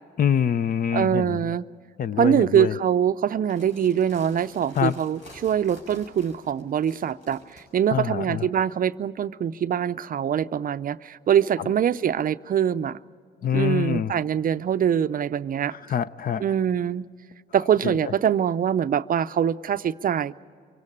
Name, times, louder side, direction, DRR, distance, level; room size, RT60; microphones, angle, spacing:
voice 1, 0.2-1.5 2.0-2.8 4.8-5.0 7.9-8.5 13.4-14.1 15.7-16.4 17.8-18.1, left 8 dB, 45° left, 0.5 m, -25 dB
voice 2, 0.9-1.6 2.2-13.0 13.5-15.7 16.4-17.1 17.5-20.3, right 9 dB, 45° right, 0.5 m, -23 dB
sound 1, 3.4-7.6, left 1 dB, 70° left, 6.1 m, -48 dB
24.5 x 17.0 x 8.6 m
cardioid pair, 90°, 20 cm